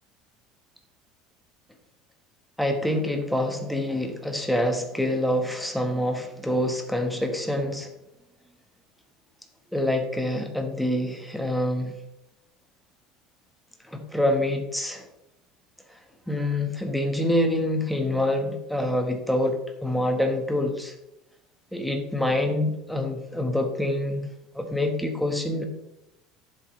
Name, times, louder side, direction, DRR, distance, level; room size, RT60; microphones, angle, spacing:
voice 1, 2.6-7.9 9.7-11.9 13.9-15.0 16.3-20.9 21.7-24.3 24.5-25.6, left 1 dB, ahead, 3 dB, 1.2 m, -26 dB
11.0 x 7.7 x 3.1 m, 0.89 s
cardioid pair, 150°, 0 cm